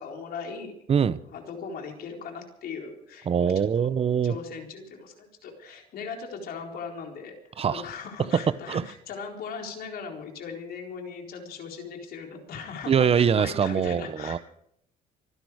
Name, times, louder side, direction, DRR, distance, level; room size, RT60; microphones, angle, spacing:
voice 1, 0.0-0.8 1.3-3.9 4.2-7.3 7.7-14.4, left 5 dB, 65° left, 4.2 m, -39 dB
voice 2, 0.9-1.2 3.3-4.4 7.6-7.8 8.7-8.8 12.9-14.4, right 7 dB, 35° right, 0.8 m, -23 dB
25.5 x 10.5 x 4.9 m
cardioid pair, 110°, 17 cm